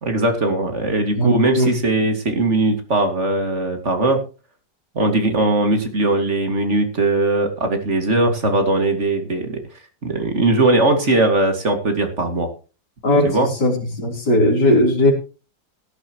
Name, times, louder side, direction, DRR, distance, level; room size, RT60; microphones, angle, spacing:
voice 1, 0.0-4.2 4.9-9.6 10.0-12.5 13.2-13.5, right 2 dB, 40° right, 6 dB, 2.5 m, -19 dB
voice 2, 1.2-1.7 13.0-15.1, left 1 dB, 60° left, 2 dB, 4.2 m, -18 dB
17.0 x 11.5 x 3.0 m, 0.33 s
omnidirectional pair, 2.0 m